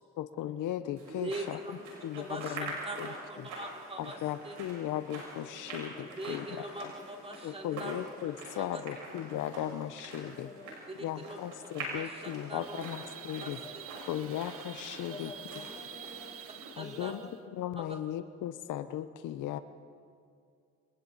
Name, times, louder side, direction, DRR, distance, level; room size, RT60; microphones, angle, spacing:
voice 1, 0.2-2.7 3.0-3.1 3.4-3.5 4.0-6.9 7.4-10.5 11.0-13.6 14.1-15.3 16.8-17.2 17.5-19.6, left 11 dB, 85° left, 11 dB, 0.9 m, -37 dB
sound 1, 1.0-16.7, right 2 dB, 85° right, 7.2 m, -45 dB
voice 2, 1.1-1.8 2.2-2.6 2.8-4.2 4.4-4.6 6.0-8.0 8.5-8.8 11.2-11.4 11.9-12.8 13.4-13.8 15.2-15.3 16.8-17.2 17.8-18.0, right 1 dB, 20° right, 2 dB, 3.0 m, -42 dB
voice 3, 5.7-6.2 8.9-9.0 10.4-10.8 12.7-12.8 13.5-14.0 15.0-16.4 16.8-17.4 17.9-18.0, left 3 dB, 20° left, 5 dB, 2.1 m, -50 dB
sound 2, 12.6-17.4, right 9 dB, 50° right, 0.8 m, -47 dB
29.5 x 26.5 x 4.1 m, 2.3 s
cardioid pair, 90°, 30 cm